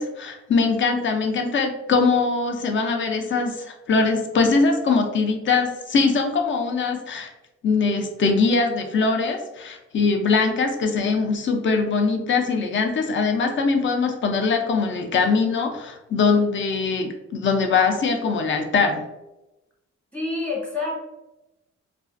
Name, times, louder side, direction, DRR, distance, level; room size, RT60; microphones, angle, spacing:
voice 1, 0.0-7.3 7.6-19.0, left 4 dB, 45° left, 4 dB, 0.4 m, -22 dB
voice 2, 20.1-21.0, left 3 dB, 5° left, -3 dB, 0.8 m, -27 dB
2.3 x 2.3 x 2.4 m, 0.97 s
cardioid pair, 105°, 29 cm